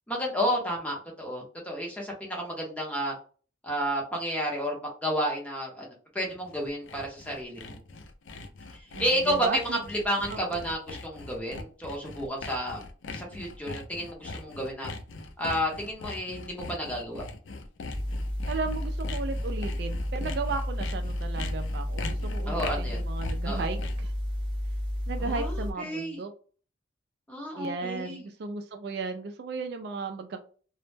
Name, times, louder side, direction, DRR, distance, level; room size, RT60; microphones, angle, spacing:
voice 1, 0.1-3.1 3.6-5.9 6.1-7.8 8.7-12.8 13.1-14.9 15.4-17.2 22.5-23.0 23.4-23.7 25.2-26.2 27.3-28.2, equal, 5° left, -2 dB, 0.6 m, -31 dB
Sawing, 6.3-24.1, left 3 dB, 80° left, 0.4 m, -41 dB
voice 2, 8.9-9.8 10.3-10.4 18.5-24.1 25.1-26.3 27.6-30.4, right 4 dB, 55° right, 7 dB, 0.3 m, -35 dB
sound 1, 17.9-25.7, left 1 dB, 25° right, 0.8 m, -31 dB
2.0 x 2.0 x 3.2 m, 0.40 s
head